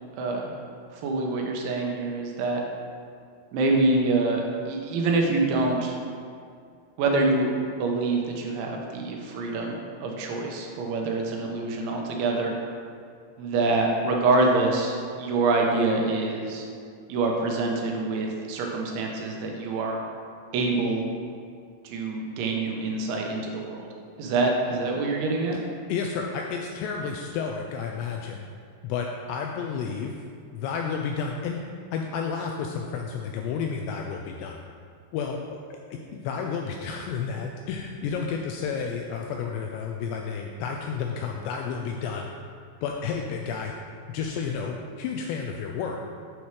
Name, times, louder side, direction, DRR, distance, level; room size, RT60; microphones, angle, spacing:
voice 1, 0.2-0.5 0.9-2.6 3.5-6.0 7.0-12.5 13.4-16.7 17.1-20.0 20.5-21.0 21.8-23.9 24.2-25.6, right 3 dB, 80° right, 0 dB, 3.1 m, -26 dB
voice 2, 25.9-28.4 28.8-30.1 30.5-34.6 35.1-42.3 42.8-43.7 44.1-46.0, left 6 dB, 85° left, 1 dB, 2.5 m, -31 dB
8.1 x 7.0 x 3.2 m, 2.2 s
omnidirectional pair, 5.4 m